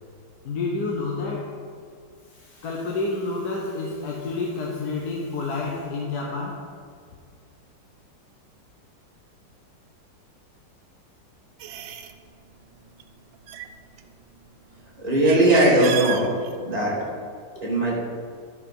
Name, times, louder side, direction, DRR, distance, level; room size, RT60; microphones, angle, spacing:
voice 1, 0.4-1.6 2.3-6.6, left 3 dB, 60° left, -1 dB, 1.3 m, -29 dB
sound 1, 11.6-12.2 12.9-13.1 13.3-14.4 15.0-16.8, right 9 dB, 80° right, 1.4 m, -33 dB
voice 2, 15.0-16.3 16.6-17.0 17.6-18.0, right 1 dB, 20° right, -5 dB, 2.6 m, -19 dB
10.0 x 5.7 x 5.4 m, 2.2 s
omnidirectional pair, 2.0 m